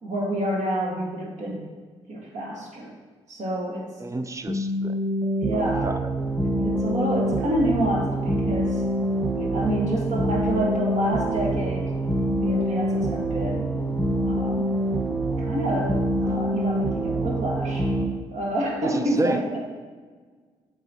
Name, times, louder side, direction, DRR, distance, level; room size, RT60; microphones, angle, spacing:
voice 1, 0.0-1.7 2.1-2.9 3.3-3.9 5.4-5.9 6.4-8.8 9.3-11.9 12.4-13.7 14.2-14.7 15.1-15.9 16.2-17.9 18.3-19.6, right 1 dB, 55° right, -2 dB, 1.7 m, -28 dB
voice 2, 4.0-5.0 5.5-6.0 18.8-19.4, right 2 dB, 20° right, 10 dB, 0.5 m, -30 dB
sound 1, 4.5-18.1, right 1 dB, 5° left, 1.6 m, -26 dB
7.7 x 4.9 x 2.9 m, 1.5 s
hypercardioid pair, 40°, 15 cm